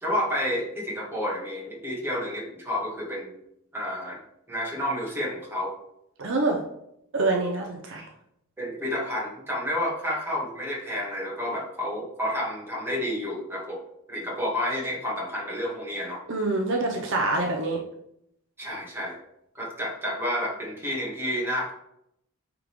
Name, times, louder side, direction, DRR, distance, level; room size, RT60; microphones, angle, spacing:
voice 1, 0.0-3.4 3.7-4.2 4.5-5.7 8.6-13.8 14.1-16.2 18.6-19.2 19.6-21.7, left 1 dB, 10° right, -4 dB, 1.7 m, -30 dB
voice 2, 6.2-6.6 7.1-8.0 16.3-17.8, right 2 dB, 60° right, 1 dB, 0.8 m, -25 dB
8.6 x 3.7 x 3.2 m, 0.76 s
head